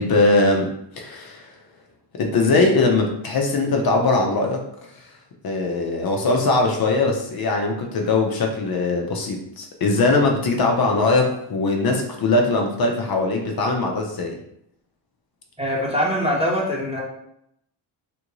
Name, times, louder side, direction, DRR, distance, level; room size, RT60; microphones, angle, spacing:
voice 1, 0.0-1.5 2.1-4.6 4.9-5.0 5.4-14.4, left 3 dB, 55° left, 2 dB, 0.6 m, -21 dB
voice 2, 15.6-17.0, equal, 15° right, -5 dB, 0.9 m, -23 dB
3.5 x 2.5 x 3.0 m, 0.75 s
cardioid pair, 80°, 46 cm